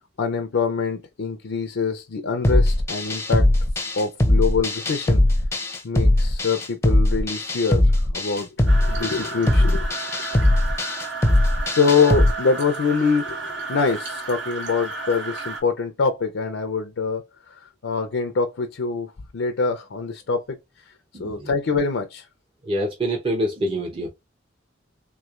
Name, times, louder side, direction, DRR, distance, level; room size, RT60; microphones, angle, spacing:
voice 1, 0.2-3.5 4.0-5.2 5.8-9.9 11.7-17.2 17.8-20.6 21.2-22.3, left 5 dB, 85° left, 0.5 m, -24 dB
sound 1, 2.4-12.3, left 1 dB, 15° left, 0.5 m, -20 dB
sound 2, 8.7-15.6, right 3 dB, 75° right, 1.3 m, -33 dB
voice 2, 21.1-21.5 22.6-24.1, right 1 dB, 30° right, 0.7 m, -26 dB
3.6 x 3.1 x 2.4 m
head